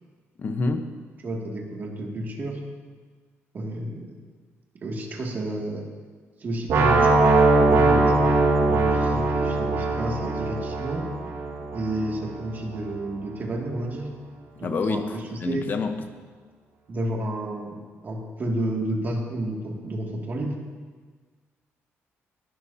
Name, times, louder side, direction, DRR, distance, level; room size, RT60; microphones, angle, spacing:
voice 1, 0.4-0.9 14.6-16.0, left 4 dB, 40° left, 7 dB, 1.0 m, -27 dB
voice 2, 1.2-2.6 3.5-4.1 4.8-5.8 6.4-7.2 7.7-8.3 8.7-11.0 11.7-14.1 14.6-15.6 16.9-17.8 18.0-20.6, right 1 dB, 40° right, -1 dB, 2.4 m, -30 dB
sound 1, 6.7-12.6, right 3 dB, 70° right, 1.9 m, -21 dB
20.5 x 12.0 x 2.9 m, 1.5 s
cardioid pair, 130°, 5 cm